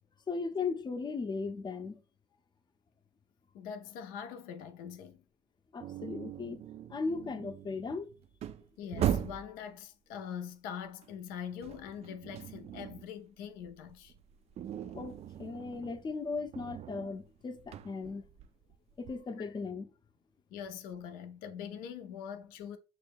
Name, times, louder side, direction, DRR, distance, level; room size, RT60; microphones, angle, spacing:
voice 1, 0.3-2.0 5.7-6.6 6.9-8.1 14.9-18.3 19.0-19.9, left 4 dB, 30° left, 0.6 m, -37 dB
voice 2, 3.5-5.2 8.8-14.1 19.4-19.6 20.5-22.8, left 8 dB, 70° left, 0.6 m, -43 dB
sound 1, 5.8-9.6 11.0-13.1 13.4-19.2, right 10 dB, 45° right, 0.4 m, -39 dB
6.4 x 2.2 x 3.4 m
hypercardioid pair, 70°, 15 cm